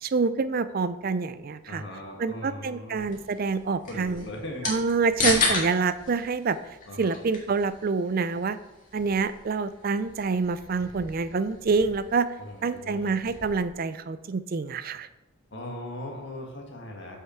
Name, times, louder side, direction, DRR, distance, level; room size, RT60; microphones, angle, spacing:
voice 1, 0.0-1.8 2.2-4.2 4.7-6.6 7.0-8.6 8.9-12.3 12.6-15.1, right 4 dB, 40° right, 13 dB, 0.4 m, -27 dB
voice 2, 1.7-3.1 3.9-4.7 6.9-7.2 12.4-13.2 15.5-17.2, left 1 dB, 55° left, 0 dB, 1.8 m, -39 dB
sound 1, 3.0-13.7, left 3 dB, 35° left, 2.0 m, -35 dB
8.1 x 5.6 x 4.4 m, 0.96 s
head